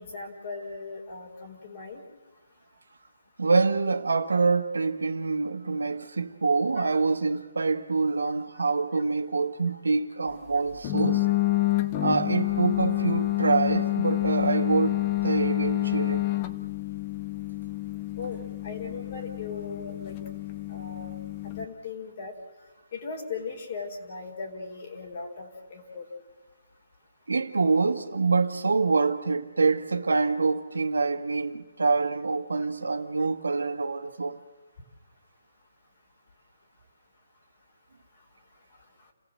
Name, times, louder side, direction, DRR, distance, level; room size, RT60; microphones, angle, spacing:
voice 1, 0.0-2.0 6.8-6.9 18.2-20.2 20.7-21.1 21.4-22.3 22.9-26.0, left 4 dB, 45° left, 4.5 m, -38 dB
voice 2, 3.4-11.3 12.0-16.2 27.3-34.4, right 4 dB, 85° right, 1.5 m, -26 dB
sound 1, 10.8-21.7, left 17 dB, 30° left, 1.3 m, -28 dB
29.5 x 16.0 x 7.8 m
hypercardioid pair, 150°, 0 cm